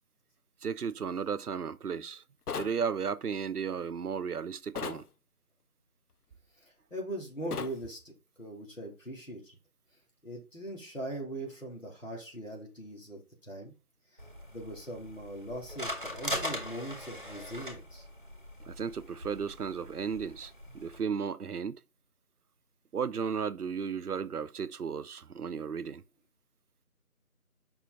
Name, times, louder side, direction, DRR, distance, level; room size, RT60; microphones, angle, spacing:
voice 1, 0.6-2.2 2.5-5.1 18.6-21.8 22.9-26.0, right 6 dB, 85° right, 0.6 m, -34 dB
sound 1, 2.5-2.8 4.8-5.0 7.5-7.8, left 6 dB, 85° left, 0.6 m, -36 dB
voice 2, 6.6-9.6 10.2-13.7 14.5-18.0, right 1 dB, 60° left, 3.3 m, -41 dB
sound 2, 14.2-21.0, equal, 35° right, 1.6 m, -41 dB
5.5 x 4.8 x 3.9 m
figure-of-eight pair, 175°, 45 cm